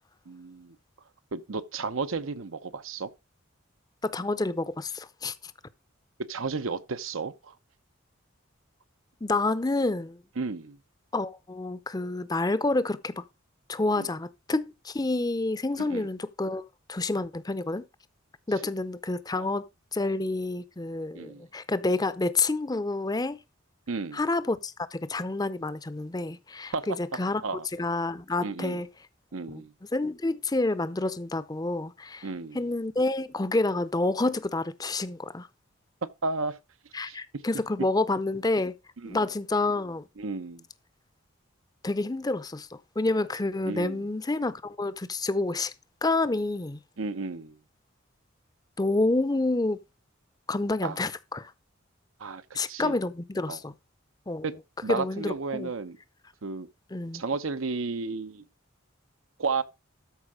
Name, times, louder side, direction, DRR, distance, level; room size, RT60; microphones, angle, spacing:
voice 1, 0.3-0.8 1.3-3.1 6.3-7.6 10.4-10.8 13.9-14.1 15.8-16.1 19.3-19.5 21.1-21.4 23.9-24.2 26.7-26.9 27.4-27.7 28.4-28.8 29.3-29.7 32.2-32.6 36.2-36.6 37.1-37.2 39.0-39.3 40.2-40.6 43.6-44.0 47.0-47.6 50.8-51.0 52.2-52.9 53.5-53.6 54.4-54.5 54.8-56.0 56.4-56.7 57.1-58.4 59.4-59.6, right 4 dB, 80° right, 0.8 m, -33 dB
voice 2, 4.0-5.5 9.2-10.2 11.1-13.2 13.7-17.8 18.5-19.7 19.9-23.4 24.1-27.4 27.7-28.9 29.5-29.6 29.9-32.3 32.5-35.5 36.9-38.7 39.1-40.0 41.8-45.7 46.0-46.8 48.8-49.8 50.5-51.5 52.5-53.7 54.3-54.5 54.9-55.7 56.9-57.2, left 2 dB, 20° left, 0.6 m, -28 dB
13.0 x 4.7 x 4.9 m
head